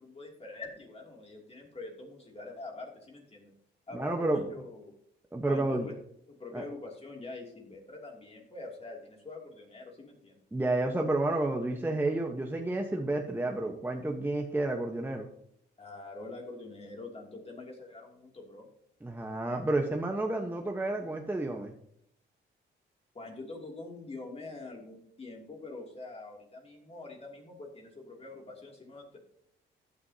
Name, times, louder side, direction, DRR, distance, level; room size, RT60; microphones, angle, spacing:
voice 1, 0.0-3.5 3.9-4.9 5.5-5.9 6.3-10.4 15.8-18.7 23.1-29.2, left 2 dB, 30° left, 0 dB, 2.7 m, -45 dB
voice 2, 3.9-4.4 5.3-5.9 6.5-6.6 10.5-15.3 19.0-21.7, right 2 dB, 10° right, 2 dB, 1.1 m, -30 dB
15.0 x 9.7 x 2.8 m, 0.70 s
cardioid pair, 90°, 20 cm